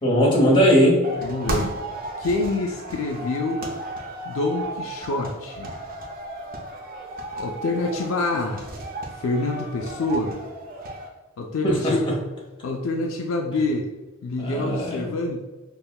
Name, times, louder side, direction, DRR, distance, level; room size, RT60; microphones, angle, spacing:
voice 1, 0.0-1.0 11.6-12.1 14.4-15.1, equal, 25° left, -3 dB, 0.9 m, -19 dB
sound 1, 1.0-11.1, right 1 dB, 45° right, 0.5 m, -34 dB
voice 2, 1.2-1.7 2.2-3.6 4.3-5.7 7.4-8.7 9.1-10.4 11.4-12.1 12.6-13.9 14.2-15.4, left 2 dB, 65° left, 2 dB, 0.3 m, -26 dB
5.3 x 2.2 x 2.2 m, 1.2 s
head